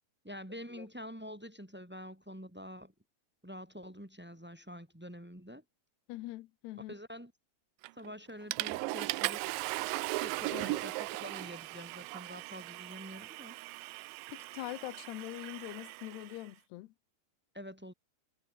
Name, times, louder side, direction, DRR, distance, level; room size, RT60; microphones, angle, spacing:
voice 1, 0.2-2.9 3.4-5.6 6.9-7.3 7.9-9.4 10.2-13.5 17.5-17.9, equal, 5° right, 0.7 m, -47 dB
voice 2, 6.1-6.9 10.5-10.8 14.3-16.9, left 17 dB, 75° left, 2.8 m, -43 dB
Water / Toilet flush, 7.8-8.1 8.5-16.4, right 22 dB, 85° right, 3.0 m, -38 dB
omnidirectional pair, 5.2 m